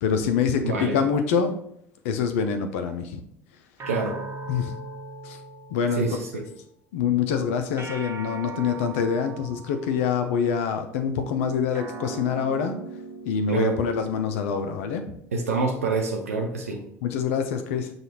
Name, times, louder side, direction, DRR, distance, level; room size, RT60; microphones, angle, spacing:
voice 1, 0.0-1.5 2.0-3.2 4.5-4.8 5.2-5.4 5.7-6.1 6.9-12.8 13.2-15.2 17.0-17.9, left 6 dB, 65° left, 6 dB, 0.4 m, -25 dB
voice 2, 0.6-1.0 3.8-4.2 5.9-6.5 13.5-13.8 15.3-16.9, right 4 dB, 80° right, 2 dB, 0.5 m, -26 dB
sound 1, 3.8-6.4 7.8-10.3 11.7-14.4, right 4 dB, 35° right, 1.0 m, -39 dB
6.2 x 2.3 x 2.8 m, 0.72 s
figure-of-eight pair, 65°, 8 cm